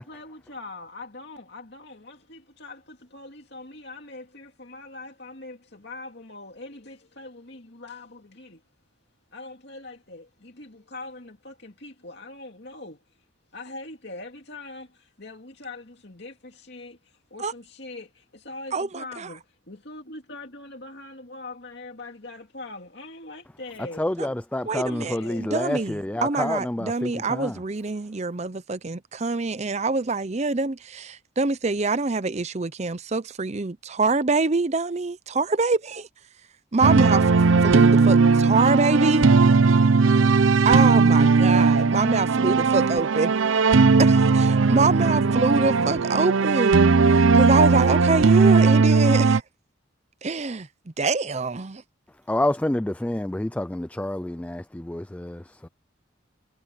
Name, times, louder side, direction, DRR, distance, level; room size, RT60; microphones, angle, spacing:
voice 1, 0.0-8.6 9.3-13.0 13.5-24.1 24.6-25.5, left 2 dB, 55° left, 2.7 m, -42 dB
voice 2, 18.7-19.3 24.7-36.1 36.7-37.2 37.6-39.3 40.6-43.3 44.0-49.4 50.2-50.7 51.0-51.8, right 3 dB, 35° right, 0.6 m, -25 dB
voice 3, 24.0-27.6 52.3-55.7, left 1 dB, 5° left, 0.3 m, -28 dB
sound 1, 36.8-49.4, right 4 dB, 80° right, 0.6 m, -18 dB
head